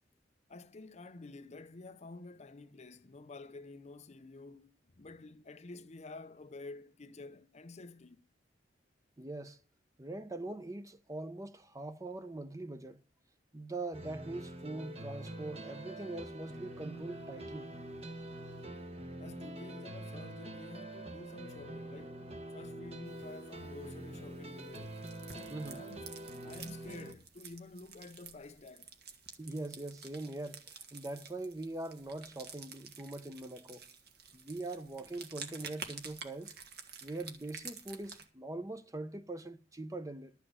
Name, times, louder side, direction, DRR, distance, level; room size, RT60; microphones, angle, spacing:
voice 1, 0.5-8.3 19.2-22.2 22.5-25.0 25.3-26.0 26.4-28.9, left 3 dB, 40° left, 0.6 m, -50 dB
voice 2, 9.2-9.6 10.0-13.0 13.5-17.7 25.5-25.8 29.4-33.8 34.3-36.5 37.0-40.3, right 2 dB, 20° right, 0.8 m, -42 dB
sound 1, 13.9-27.1, right 1 dB, 35° right, 1.1 m, -45 dB
sound 2, 23.1-38.2, right 6 dB, 60° right, 1.7 m, -51 dB
12.0 x 6.0 x 7.9 m
head